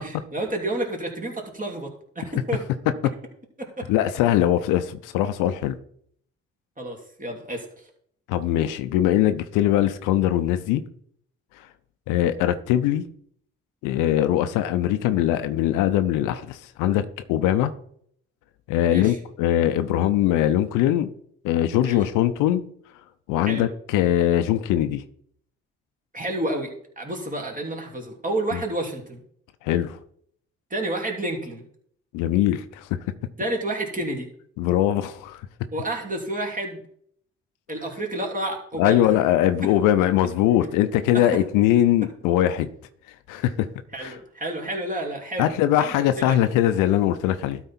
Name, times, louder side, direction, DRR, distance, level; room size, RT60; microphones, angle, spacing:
voice 1, 0.0-2.6 3.8-3.9 4.4-4.5 6.8-7.7 18.8-19.2 21.8-22.0 23.4-23.7 26.1-26.7 27.0-29.2 30.7-31.6 33.4-34.3 35.7-36.8 37.7-39.1 39.6-39.7 41.1-41.3 43.9-46.4, right 1 dB, 25° right, 2.7 m, -30 dB
voice 2, 3.9-5.8 8.3-10.8 12.1-13.0 13.8-17.7 18.7-21.1 21.4-22.6 23.3-25.0 28.5-28.6 29.6-30.0 32.1-32.9 34.6-35.4 38.8-42.7 43.3-43.7 44.0-44.1 45.4-47.6, left 12 dB, 80° left, 0.6 m, -21 dB
12.5 x 4.5 x 4.3 m
hypercardioid pair, 50°, 31 cm